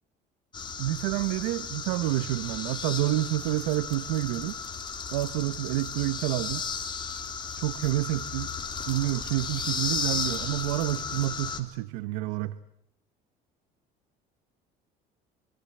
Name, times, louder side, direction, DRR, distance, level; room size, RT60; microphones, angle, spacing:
sound 1, 0.5-11.6, left 5 dB, 25° left, 3.4 m, -34 dB
voice 1, 0.8-4.6 5.1-6.6 7.6-8.5 8.8-12.6, right 16 dB, 90° right, 14 dB, 1.0 m, -29 dB
25.5 x 25.5 x 7.8 m, 0.75 s
cardioid pair, 110°, 18 cm